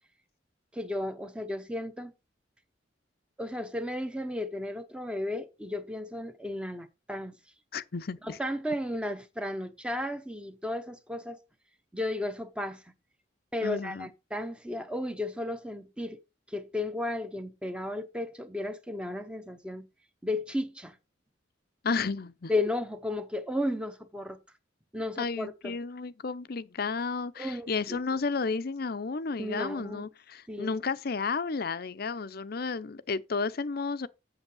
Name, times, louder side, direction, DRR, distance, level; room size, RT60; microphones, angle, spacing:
voice 1, 0.7-2.1 3.4-7.4 8.2-11.4 11.9-12.8 13.5-16.2 16.5-19.9 20.2-20.9 22.5-24.4 24.9-25.7 27.4-28.0 29.4-30.1 30.5-30.7, left 1 dB, 5° right, 0.8 m, -34 dB
voice 2, 7.7-8.4 13.6-14.1 21.8-22.5 25.2-34.1, left 4 dB, 50° left, 0.6 m, -32 dB
8.1 x 7.0 x 5.4 m
head